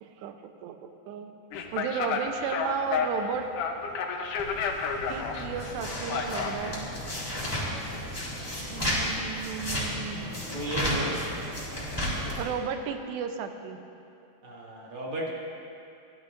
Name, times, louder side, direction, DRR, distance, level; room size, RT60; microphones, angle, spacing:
voice 1, 0.0-1.4 1.7-3.5 5.1-6.9 8.7-10.4 12.4-13.8, right 7 dB, 90° right, 7 dB, 2.9 m, -34 dB
sound 1, 1.5-8.8, left 5 dB, 75° left, 1.9 m, -32 dB
sound 2, 4.4-12.4, equal, 5° left, 2.6 m, -33 dB
voice 2, 10.5-11.3 14.4-15.3, right 1 dB, 40° right, -5 dB, 2.1 m, -34 dB
29.0 x 12.5 x 2.6 m, 2.7 s
omnidirectional pair, 4.8 m